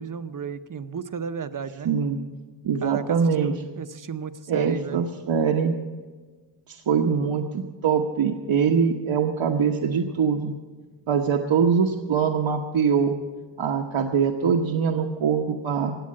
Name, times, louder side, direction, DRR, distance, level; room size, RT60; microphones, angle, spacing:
voice 1, 0.0-2.0 2.8-5.0 10.1-10.2, right 6 dB, 45° right, 11 dB, 0.7 m, -34 dB
voice 2, 1.8-2.2 2.6-3.5 4.5-5.8 6.7-10.5 11.1-13.2 13.6-16.0, right 6 dB, 75° right, 2 dB, 1.0 m, -23 dB
16.0 x 9.3 x 7.5 m, 1.4 s
wide cardioid pair, 120°, 47 cm